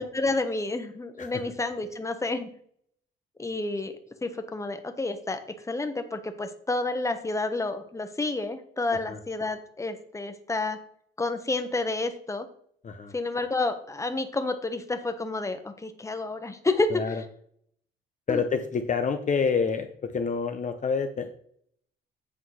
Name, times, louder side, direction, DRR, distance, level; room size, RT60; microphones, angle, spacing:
voice 1, 0.0-2.5 3.4-3.9 4.2-5.4 5.7-10.8 11.2-12.5 13.1-17.1 18.3-18.4, left 2 dB, 15° left, 7 dB, 1.0 m, -30 dB
voice 2, 16.9-17.2 18.3-19.9 20.1-21.3, left 5 dB, 40° left, 6 dB, 0.8 m, -28 dB
8.3 x 3.7 x 6.3 m, 0.64 s
cardioid pair, 90°, 20 cm